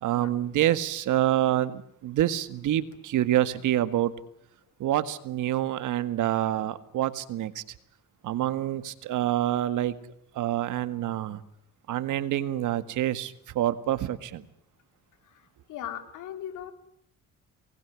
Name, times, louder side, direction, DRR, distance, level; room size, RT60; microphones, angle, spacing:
voice 1, 0.0-4.1 4.8-7.6 8.2-10.0 10.4-11.4 11.9-14.4, right 12 dB, 80° right, 13 dB, 1.8 m, -27 dB
voice 2, 15.2-16.7, left 10 dB, 90° left, 9 dB, 3.0 m, -39 dB
24.5 x 20.0 x 9.6 m, 0.72 s
cardioid pair, 90°, 30 cm